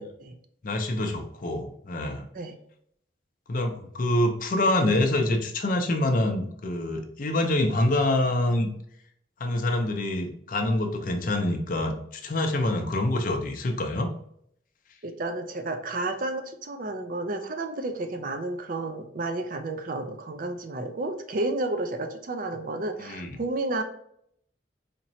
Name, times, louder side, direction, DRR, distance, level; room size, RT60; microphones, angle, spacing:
voice 1, 0.6-2.3 3.5-8.7 9.4-14.1 23.0-23.4, left 1 dB, 45° left, 5 dB, 0.5 m, -26 dB
voice 2, 15.0-23.8, right 2 dB, 45° right, 7 dB, 0.4 m, -31 dB
4.3 x 3.0 x 2.7 m, 0.69 s
head